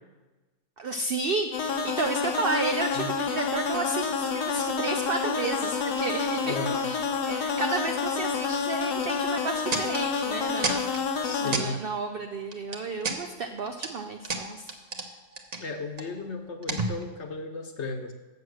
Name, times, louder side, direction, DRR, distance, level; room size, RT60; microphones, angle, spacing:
voice 1, 0.8-7.0 7.3-14.7, right 3 dB, 85° right, 5 dB, 0.5 m, -32 dB
sound 1, 1.5-11.6, left 5 dB, 90° left, 1.5 m, -29 dB
voice 2, 6.4-6.9 11.2-11.8 15.6-18.1, left 3 dB, 50° left, 5 dB, 1.1 m, -34 dB
sound 2, 9.0-9.2 9.7-10.0 10.6-11.0 11.5-11.7 12.5-13.2 13.6-13.9 14.2-15.1 15.3-16.0 16.6-17.3, right 3 dB, 35° right, 0.7 m, -31 dB
7.6 x 7.2 x 6.3 m, 1.2 s
omnidirectional pair, 1.7 m